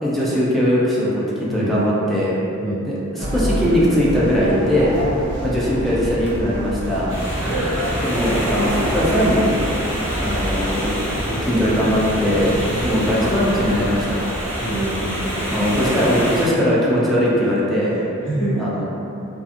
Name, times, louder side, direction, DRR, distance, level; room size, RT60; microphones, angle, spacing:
voice 1, 0.0-2.4 2.9-3.0 3.3-4.9 5.4-7.2 8.0-9.6 10.2-11.0 11.4-12.5 12.8-14.3 15.5-18.0 18.6-18.8, equal, ahead, -8 dB, 0.4 m, -20 dB
voice 2, 1.5-1.8 2.6-2.8 7.4-7.6 11.2-11.4 12.7-12.8 14.6-15.1 17.9-18.6, right 1 dB, 65° left, -19 dB, 1.2 m, -26 dB
sound 1, 3.2-14.1, right 1 dB, 55° right, 0.6 m, -27 dB
sound 2, 7.1-16.5, equal, 30° right, 1.2 m, -26 dB
2.5 x 2.4 x 2.5 m, 2.8 s
head